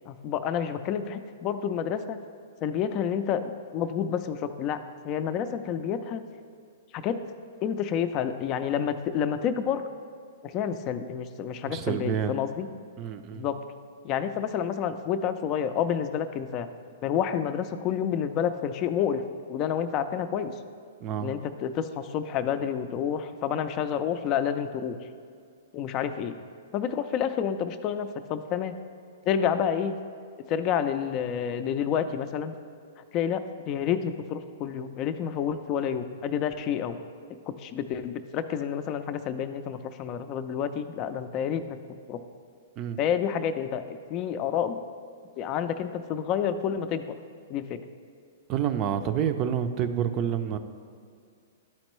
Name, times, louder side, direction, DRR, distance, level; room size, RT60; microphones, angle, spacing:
voice 1, 0.1-2.2 2.6-3.4 3.7-4.8 5.0-6.2 6.9-7.2 7.6-9.8 10.4-12.7 13.3-13.6 14.0-16.7 17.0-19.2 19.5-20.5 21.2-25.0 25.7-26.3 26.7-28.8 29.3-30.0 30.5-32.5 33.0-37.0 37.5-41.8 42.1-42.2 43.0-44.8 45.4-47.0 47.5-47.8, left 8 dB, 35° left, 10 dB, 0.4 m, -29 dB
voice 2, 11.7-12.3 13.0-13.5 21.0-21.3 42.8-43.0 48.5-50.6, right 9 dB, 35° right, 9 dB, 0.5 m, -28 dB
12.0 x 4.4 x 3.1 m, 2.3 s
hypercardioid pair, 125°, 0 cm